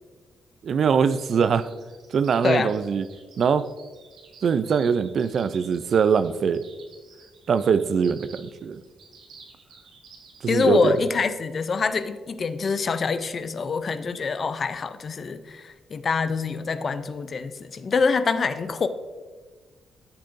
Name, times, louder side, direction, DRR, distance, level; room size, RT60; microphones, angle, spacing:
voice 1, 0.6-1.7 2.1-3.1 3.4-3.7 4.4-6.7 7.5-8.8 10.4-11.0, right 6 dB, 45° right, 13 dB, 0.4 m, -22 dB
sound 1, 1.1-11.2, right 5 dB, 75° right, 2.0 m, -51 dB
voice 2, 10.5-18.9, left 5 dB, 35° left, 12 dB, 0.4 m, -25 dB
10.5 x 7.9 x 2.6 m, 1.4 s
cardioid pair, 160°, 0 cm